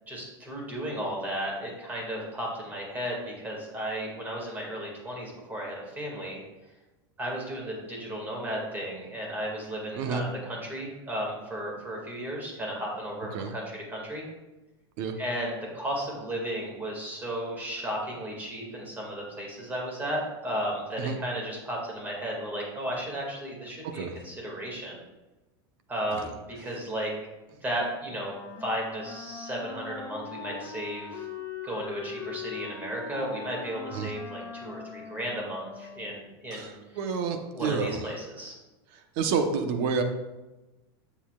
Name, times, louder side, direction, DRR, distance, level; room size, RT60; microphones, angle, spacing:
voice 1, 0.1-6.4 7.2-14.2 15.2-25.0 25.9-27.1 27.6-28.3 28.6-31.3 31.6-36.7 37.5-38.6, equal, 15° right, -2 dB, 2.1 m, -34 dB
voice 2, 23.8-24.1 33.9-34.1 36.5-36.7 37.0-38.0 39.2-40.0, right 5 dB, 55° right, 6 dB, 0.9 m, -29 dB
Wind instrument woodwind instrument, 28.1-36.3, left 6 dB, 70° left, 1.4 m, -41 dB
9.3 x 7.0 x 2.4 m, 1.1 s
supercardioid pair, 145°, 13 cm